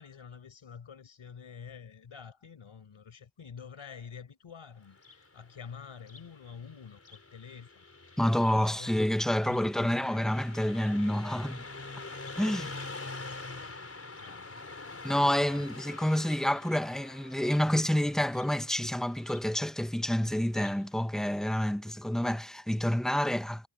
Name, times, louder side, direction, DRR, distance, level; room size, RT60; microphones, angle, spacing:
voice 1, 0.0-8.9 9.4-10.3 10.8-10.9 13.5-13.8 14.2-15.8, left 6 dB, 70° left, 5.3 m, -49 dB
Car passing by, 4.9-20.9, left 3 dB, 30° left, 4.8 m, -46 dB
voice 2, 8.2-11.6 12.4-12.7 15.0-23.7, equal, ahead, 0.7 m, -28 dB
cardioid pair, 80°, 49 cm